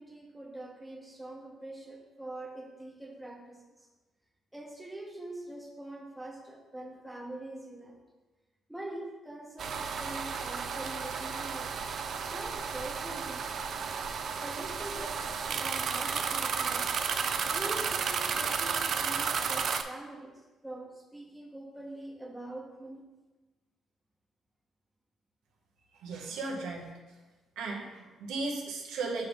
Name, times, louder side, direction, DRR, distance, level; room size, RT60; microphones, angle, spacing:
voice 1, 0.0-3.9 4.5-8.0 8.7-11.8 12.3-13.6 14.4-16.9 17.4-23.1 26.3-26.5, right 1 dB, 10° right, 0 dB, 0.9 m, -44 dB
sound 1, 9.6-19.8, right 6 dB, 60° right, 0.4 m, -33 dB
voice 2, 26.0-26.9 27.6-29.3, right 3 dB, 90° right, -1 dB, 1.0 m, -36 dB
5.6 x 5.2 x 3.5 m, 1.2 s
cardioid pair, 90°, 0 cm